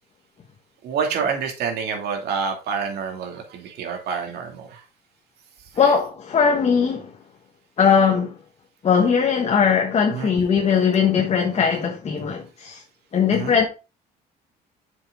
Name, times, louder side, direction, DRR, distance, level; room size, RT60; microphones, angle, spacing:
voice 1, 0.8-4.8 5.8-6.0 10.1-10.3 13.3-13.6, right 6 dB, 75° right, 2.5 m, -28 dB
voice 2, 5.8-7.1 7.8-8.3 8.8-12.8 13.1-13.7, left 6 dB, 40° left, 1.5 m, -19 dB
7.3 x 6.2 x 3.8 m
cardioid pair, 110°, 17 cm